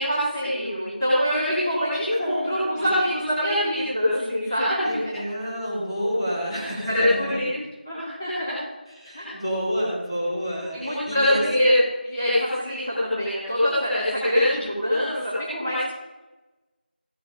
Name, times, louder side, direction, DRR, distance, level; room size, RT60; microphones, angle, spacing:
voice 1, 0.0-5.1 6.8-7.5 7.8-8.5 9.1-9.3 10.7-11.7 12.0-15.8, equal, 10° left, -14 dB, 3.3 m, -24 dB
voice 2, 2.1-2.9 4.8-7.3 8.9-11.4, equal, 30° left, -3 dB, 4.3 m, -29 dB
17.5 x 9.2 x 5.3 m, 1.1 s
figure-of-eight pair, 175°, 6 cm